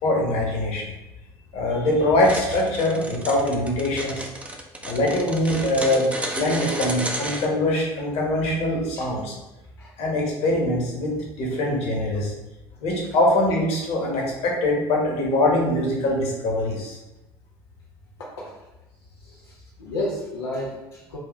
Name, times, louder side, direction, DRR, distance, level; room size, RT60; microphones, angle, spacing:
voice 1, 0.0-0.9 1.5-4.3 4.8-6.1 6.3-9.3 10.0-12.3 12.8-17.0, left 1 dB, 55° left, -2 dB, 1.3 m, -23 dB
sound 1, 2.2-7.5, right 1 dB, 10° right, 0.6 m, -32 dB
voice 2, 18.2-18.6 19.2-21.2, left 1 dB, 85° left, -5 dB, 0.6 m, -32 dB
4.7 x 2.6 x 3.1 m, 0.98 s
hypercardioid pair, 65°, 13 cm